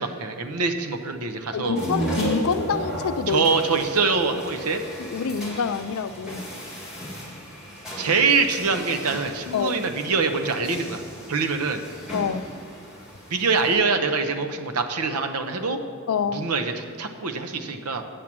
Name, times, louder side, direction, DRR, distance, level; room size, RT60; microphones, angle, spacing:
voice 1, 0.0-1.8 3.3-4.8 8.0-11.0 11.3-11.8 13.3-15.8 16.3-18.0, right 4 dB, 85° right, 6 dB, 0.8 m, -24 dB
voice 2, 1.5-3.5 5.0-6.5 9.5-9.7 12.1-12.5 16.1-16.5, left 5 dB, 70° left, 13 dB, 0.4 m, -26 dB
sound 1, 1.5-5.2, equal, 50° right, 1.6 m, -30 dB
sound 2, 1.8-13.8, equal, 5° right, 2.1 m, -39 dB
8.3 x 7.3 x 6.0 m, 2.2 s
head